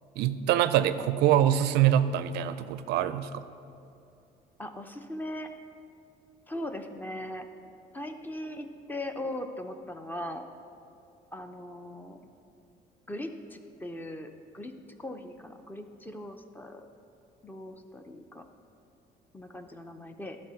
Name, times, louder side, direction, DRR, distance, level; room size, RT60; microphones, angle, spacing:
voice 1, 0.2-3.4, right 11 dB, 80° right, 12 dB, 0.4 m, -24 dB
voice 2, 4.6-5.5 6.5-7.5 7.9-10.5 11.3-12.2 13.1-14.7 15.0-16.9 17.4-18.4 19.3-20.4, left 1 dB, 10° left, 7 dB, 0.5 m, -39 dB
12.0 x 4.1 x 5.7 m, 2.7 s
cardioid pair, 110°, 17 cm